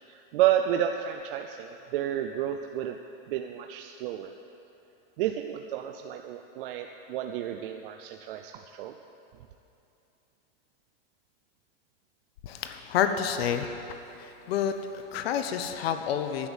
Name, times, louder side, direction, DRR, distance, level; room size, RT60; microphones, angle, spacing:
voice 1, 0.1-3.0 3.3-4.3 5.2-8.9, right 11 dB, 60° right, 6 dB, 0.6 m, -30 dB
voice 2, 12.4-13.8 14.1-16.5, left 8 dB, 80° left, 8 dB, 0.9 m, -29 dB
11.5 x 8.0 x 7.1 m, 2.9 s
supercardioid pair, 150°, 30 cm